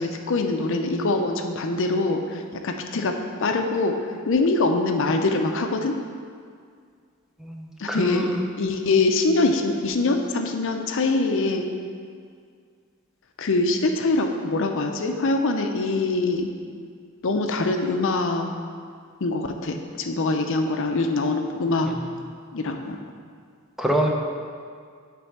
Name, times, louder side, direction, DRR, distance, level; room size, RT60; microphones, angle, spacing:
voice 1, 0.0-3.1 3.4-6.0 7.8-8.3 8.6-11.7 13.4-16.5 17.2-18.5 19.2-21.9 22.5-23.0, left 3 dB, 65° left, 4 dB, 0.6 m, -23 dB
voice 2, 7.4-8.4 21.8-22.0 23.8-24.1, right 1 dB, ahead, 0 dB, 0.6 m, -25 dB
7.9 x 3.4 x 6.5 m, 2.1 s
head